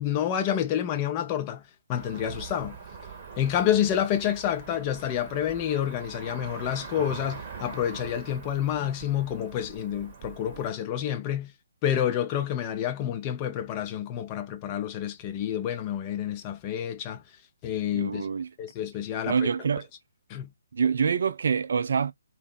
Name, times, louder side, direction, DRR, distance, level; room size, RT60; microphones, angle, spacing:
voice 1, 0.0-1.6 1.9-2.8 3.4-11.5 11.8-17.2 17.6-18.3 18.6-19.5 20.3-20.5, left 10 dB, 25° left, 0.4 m, -28 dB
Cricket / Motor vehicle (road), 1.9-10.7, right 5 dB, 25° right, 0.8 m, -43 dB
voice 2, 17.9-18.5 19.3-19.9 20.7-22.1, right 6 dB, 50° right, 0.3 m, -26 dB
2.6 x 2.0 x 2.4 m
figure-of-eight pair, 135°, 0 cm